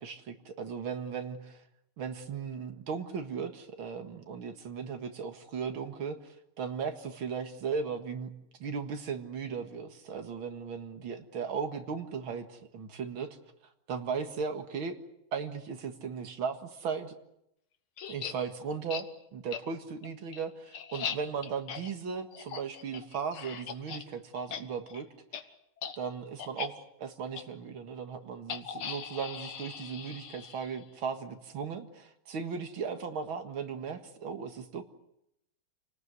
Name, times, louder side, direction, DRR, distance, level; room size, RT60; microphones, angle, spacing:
voice 1, 0.0-1.6 2.0-8.3 8.6-13.4 13.9-15.0 15.3-17.1 18.1-19.1 19.3-25.1 25.3-25.4 26.0-34.8, right 6 dB, 75° right, 6 dB, 2.6 m, -37 dB
sound 1, 18.0-18.3 18.9-19.0 19.5-19.6 20.0-24.0 24.3-24.6 24.9-25.0 25.3-25.4 25.8-26.0 26.4-26.7 27.3-27.4 28.5-30.8, left 8 dB, 85° left, 2.2 m, -39 dB
28.0 x 19.0 x 8.1 m, 0.81 s
omnidirectional pair, 2.3 m